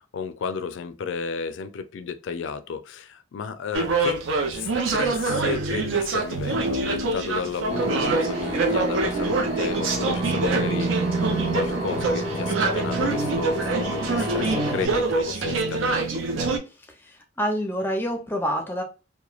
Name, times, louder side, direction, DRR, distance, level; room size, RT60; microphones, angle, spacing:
voice 1, 0.0-4.2 4.5-16.1, left 6 dB, 70° left, 0.3 m, -33 dB
sound 1, 3.7-16.6, right 3 dB, 85° right, 0.6 m, -25 dB
sound 2, 7.7-14.9, right 2 dB, 30° right, 0.8 m, -29 dB
voice 2, 16.9-18.8, equal, 10° left, 0.5 m, -27 dB
3.0 x 2.2 x 2.3 m
head